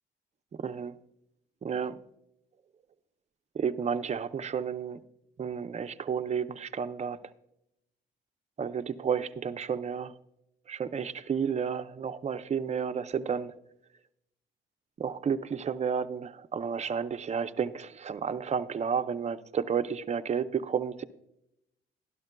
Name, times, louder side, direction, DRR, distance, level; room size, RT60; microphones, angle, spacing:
voice 1, 0.6-0.9 1.6-1.9 3.5-5.0 5.4-7.2 8.6-10.1 10.7-13.5 15.0-21.0, right 7 dB, 35° right, 11 dB, 0.5 m, -31 dB
12.0 x 12.0 x 2.2 m, 0.82 s
cardioid pair, 90°, 20 cm